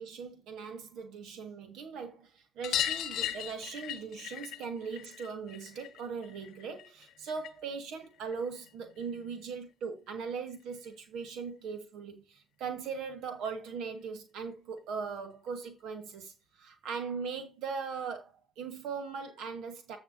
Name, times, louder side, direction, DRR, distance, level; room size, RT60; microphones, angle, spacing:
voice 1, 0.0-20.0, right 5 dB, 65° right, 1.1 m, -39 dB
sound 1, 2.6-7.7 8.0-9.2 10.5-10.6 10.8-10.9 11.3-11.4 12.6-12.7 13.0-13.1 13.4-13.5 14.8-14.9 15.7-15.8, left 11 dB, 65° left, 0.6 m, -38 dB
15.0 x 5.5 x 2.6 m
hypercardioid pair, 45°, 0 cm